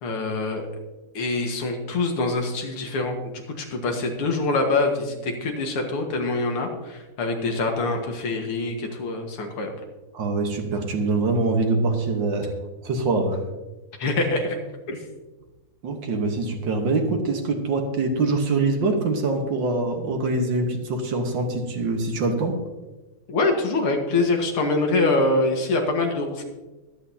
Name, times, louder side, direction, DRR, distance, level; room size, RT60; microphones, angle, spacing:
voice 1, 0.0-0.7 1.1-9.7 14.0-14.6 14.9-15.0 23.3-26.4, left 2 dB, 85° left, 3 dB, 2.4 m, -24 dB
voice 2, 10.1-12.5 12.8-13.4 15.8-22.6, right 3 dB, 60° right, 4 dB, 1.9 m, -24 dB
22.0 x 8.4 x 2.8 m, 1.1 s
omnidirectional pair, 2.4 m